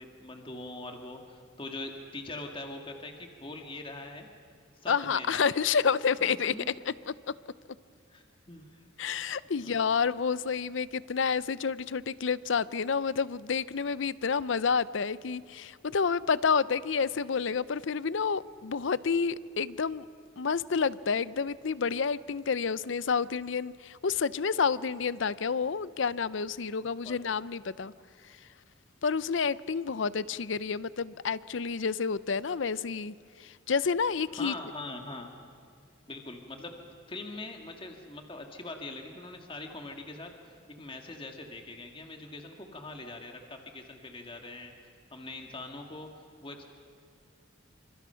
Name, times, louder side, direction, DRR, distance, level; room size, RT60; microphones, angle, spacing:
voice 1, 0.0-4.3 4.8-5.5 6.2-6.7 8.1-8.9 9.6-9.7 26.8-27.2 34.3-35.3 36.1-44.7 45.1-46.1 46.4-46.7, left 2 dB, 25° left, 3 dB, 1.9 m, -42 dB
voice 2, 4.9-6.5 6.9-7.1 9.0-20.0 20.4-27.9 29.0-33.1 33.4-34.5, left 5 dB, 70° left, 18 dB, 0.6 m, -29 dB
28.0 x 26.0 x 5.8 m, 2.3 s
head